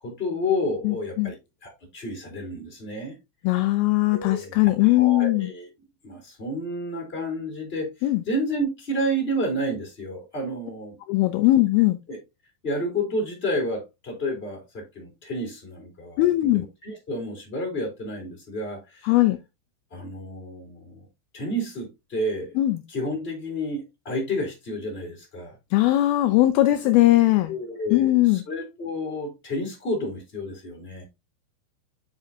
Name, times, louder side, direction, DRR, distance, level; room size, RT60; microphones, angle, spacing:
voice 1, 0.0-1.3 1.6-3.1 4.1-5.7 6.0-7.9 8.2-11.0 12.1-12.2 12.6-19.1 19.9-21.0 21.3-22.6 22.9-25.5 27.5-31.0, equal, 15° left, 3.1 m, -30 dB
voice 2, 0.8-1.3 3.4-5.5 8.0-8.2 11.1-12.0 16.2-16.6 19.0-19.4 22.6-22.8 25.7-27.5 27.9-28.4, left 17 dB, 85° left, 2.2 m, -20 dB
7.5 x 6.4 x 2.7 m
omnidirectional pair, 5.0 m